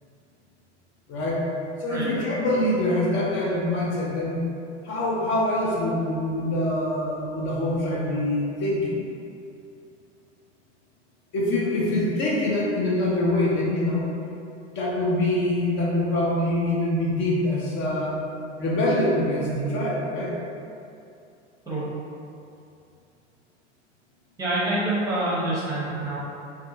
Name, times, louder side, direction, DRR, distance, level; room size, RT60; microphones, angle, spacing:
voice 1, 1.1-1.5 1.8-4.4 4.8-9.0 11.3-14.1 14.7-18.2 18.6-20.3, left 1 dB, 35° left, -4 dB, 0.6 m, -24 dB
voice 2, 24.4-26.2, right 1 dB, 10° right, -8 dB, 0.9 m, -26 dB
2.5 x 2.3 x 2.5 m, 2.5 s
hypercardioid pair, 95°, 36 cm